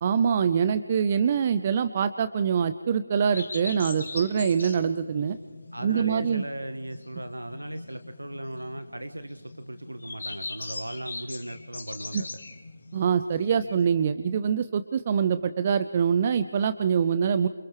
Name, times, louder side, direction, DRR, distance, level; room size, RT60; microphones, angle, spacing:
voice 1, 0.0-5.4 5.8-6.4 12.1-12.2 12.9-17.5, right 7 dB, 35° right, 12 dB, 0.6 m, -24 dB
sound 1, 3.3-13.9, left 3 dB, 60° left, 2.7 m, -41 dB
voice 2, 5.7-12.4, right 1 dB, 85° right, 10 dB, 1.1 m, -37 dB
29.5 x 28.5 x 3.2 m, 1.5 s
figure-of-eight pair, 150°, 0 cm